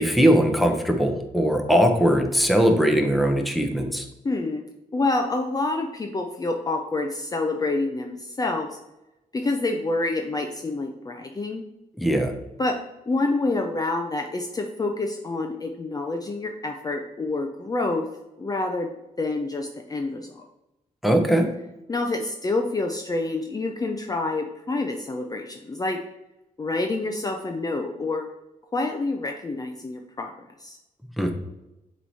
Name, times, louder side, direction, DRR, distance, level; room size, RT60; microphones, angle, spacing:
voice 1, 0.0-4.0 12.0-12.3 21.0-21.5 31.2-31.3, equal, ahead, 4 dB, 0.8 m, -20 dB
voice 2, 4.2-4.6 4.9-8.8 9.3-11.6 12.6-12.8 13.1-18.0 18.4-20.4 21.9-26.0 26.6-28.3 28.7-30.3 30.6-30.8, left 2 dB, 25° left, 3 dB, 0.6 m, -27 dB
7.4 x 3.1 x 4.1 m, 0.94 s
cardioid pair, 100°, 14 cm